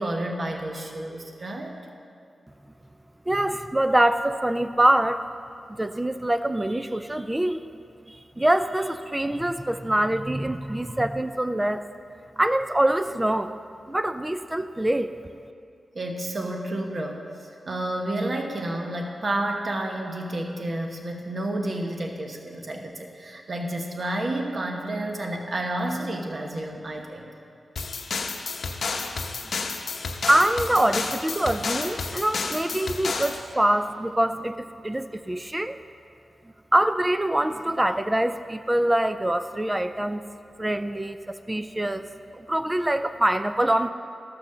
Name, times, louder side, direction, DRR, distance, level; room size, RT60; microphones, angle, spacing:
voice 1, 0.0-1.8 15.9-17.3 17.7-27.3, right 1 dB, 45° right, 2 dB, 1.1 m, -30 dB
voice 2, 3.3-5.2 5.8-7.6 8.1-11.8 12.4-13.5 13.9-15.1 30.3-35.8 36.7-40.3 40.6-42.1 42.3-43.9, right 1 dB, 15° right, 10 dB, 0.4 m, -24 dB
sound 1, 27.8-33.4, left 4 dB, 75° left, 0.7 m, -31 dB
13.5 x 6.1 x 6.6 m, 2.4 s
wide cardioid pair, 100°, 0 cm